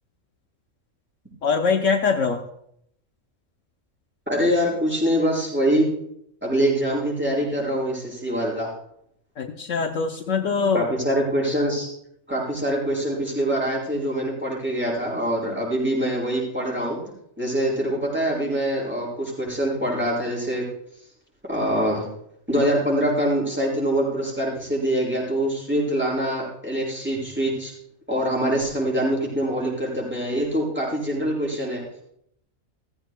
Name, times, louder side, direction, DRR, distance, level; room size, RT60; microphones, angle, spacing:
voice 1, 1.4-2.4 9.4-10.9, left 5 dB, 65° left, 4 dB, 1.1 m, -23 dB
voice 2, 4.3-5.9 6.4-8.7 10.7-11.9 12.3-17.0 17.4-20.7 21.5-22.0 22.5-27.7 28.1-31.8, equal, 10° right, -5 dB, 6.0 m, -24 dB
16.5 x 15.5 x 2.2 m, 0.74 s
omnidirectional pair, 1.4 m